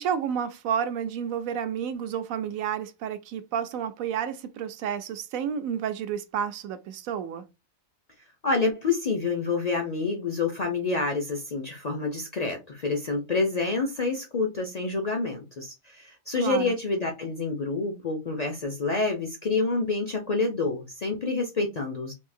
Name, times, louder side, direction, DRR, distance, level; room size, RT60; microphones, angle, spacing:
voice 1, 0.0-7.4 16.4-16.7, right 8 dB, 85° right, 1.0 m, -30 dB
voice 2, 8.4-22.1, left 3 dB, 50° left, 0.5 m, -28 dB
3.5 x 2.7 x 2.5 m
omnidirectional pair, 1.4 m